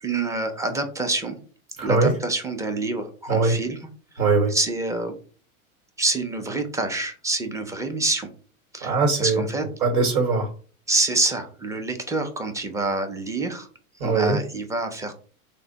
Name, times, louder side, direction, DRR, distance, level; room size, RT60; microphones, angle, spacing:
voice 1, 0.0-1.4 1.8-3.8 4.5-5.2 6.0-8.3 8.7-8.9 9.2-9.7 10.9-13.7 14.0-15.2, right 2 dB, 5° right, 6 dB, 0.5 m, -26 dB
voice 2, 1.8-2.1 3.3-3.6 4.2-4.5 8.8-9.4 9.8-10.5 14.0-14.4, right 4 dB, 75° right, 2 dB, 1.2 m, -21 dB
3.3 x 2.1 x 3.8 m, 0.40 s
hypercardioid pair, 105°, 43 cm